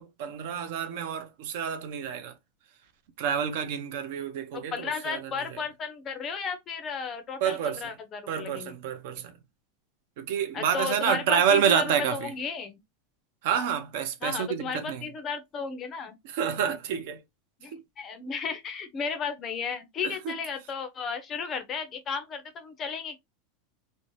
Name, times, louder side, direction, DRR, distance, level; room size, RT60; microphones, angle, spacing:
voice 1, 0.0-2.4 3.2-5.6 7.4-7.8 8.3-9.4 10.2-12.3 13.4-15.1 16.2-17.2 17.7-17.8 20.0-20.4, right 8 dB, 55° right, 0.5 m, -28 dB
voice 2, 4.5-8.7 10.5-12.8 14.2-16.2 17.6-23.2, left 5 dB, 20° left, 0.5 m, -34 dB
2.6 x 2.1 x 2.9 m
supercardioid pair, 170°, 0 cm